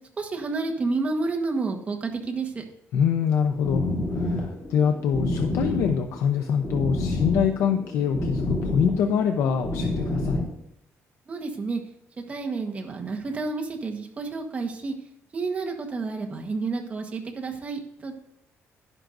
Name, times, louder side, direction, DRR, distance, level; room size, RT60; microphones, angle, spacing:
voice 1, 0.2-2.6 11.3-11.8 12.3-14.9 15.3-18.1, right 3 dB, 25° right, 2 dB, 1.4 m, -30 dB
voice 2, 2.9-10.4, left 7 dB, 80° left, 5 dB, 0.7 m, -24 dB
sound 1, 3.2-10.5, left 2 dB, 25° left, 2.8 m, -29 dB
11.5 x 10.5 x 2.6 m, 0.74 s
cardioid pair, 155°, 5 cm